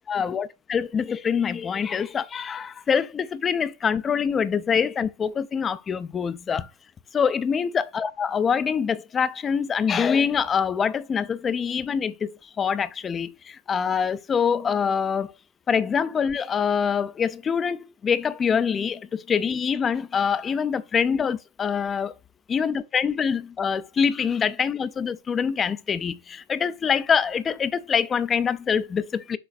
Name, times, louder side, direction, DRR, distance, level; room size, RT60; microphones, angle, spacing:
voice 1, 0.1-6.7 7.1-15.3 15.7-22.1 22.5-29.4, left 6 dB, 20° left, 0.5 m, -25 dB
6.7 x 4.0 x 4.1 m
figure-of-eight pair, 90°, 0 cm